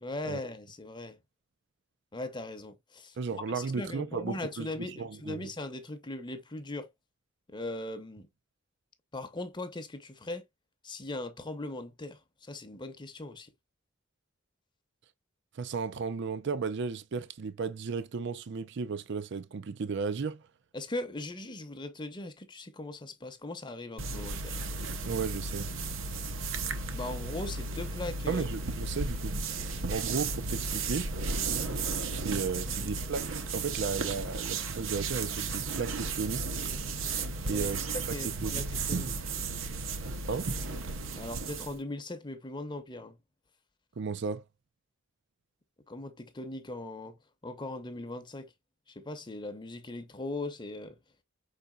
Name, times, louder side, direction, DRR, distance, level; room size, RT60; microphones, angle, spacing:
voice 1, 0.0-1.2 2.1-6.9 7.5-8.3 9.1-10.4 10.8-13.5 20.7-24.6 26.9-28.4 32.7-32.9 37.4-37.7 38.1-39.1 41.2-43.2 45.9-48.5 48.9-51.0, left 2 dB, 25° left, 0.7 m, -39 dB
voice 2, 3.2-5.5 15.6-20.4 25.0-25.7 28.3-29.4 29.9-31.1 32.1-33.2 33.5-36.5 37.5-38.7 40.3-40.5 44.0-44.4, right 5 dB, 60° right, 0.5 m, -34 dB
sound 1, 24.0-41.8, right 4 dB, 85° right, 0.8 m, -34 dB
5.5 x 4.1 x 2.2 m
head